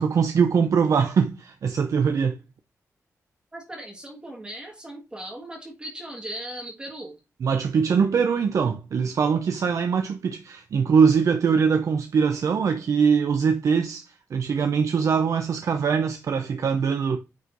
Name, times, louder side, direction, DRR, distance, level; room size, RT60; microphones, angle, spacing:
voice 1, 0.0-2.4 7.4-17.2, right 6 dB, 65° right, 0.6 m, -22 dB
voice 2, 3.5-7.2, right 1 dB, 15° right, 1.7 m, -38 dB
9.5 x 4.3 x 2.6 m
wide cardioid pair, 135°, 6 cm